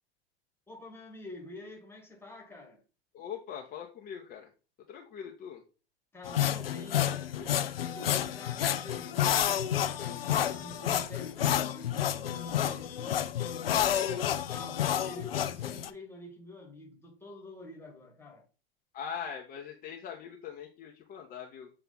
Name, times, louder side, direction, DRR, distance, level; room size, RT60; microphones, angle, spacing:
voice 1, 0.7-2.8 6.1-18.5, left 2 dB, 10° left, 1.6 m, -48 dB
voice 2, 3.1-4.5 4.9-5.6 14.0-14.4 18.9-21.7, left 7 dB, 30° left, 0.9 m, -42 dB
sound 1, 6.2-15.9, left 10 dB, 75° left, 0.6 m, -30 dB
7.2 x 3.3 x 4.0 m
figure-of-eight pair, 90°, 30 cm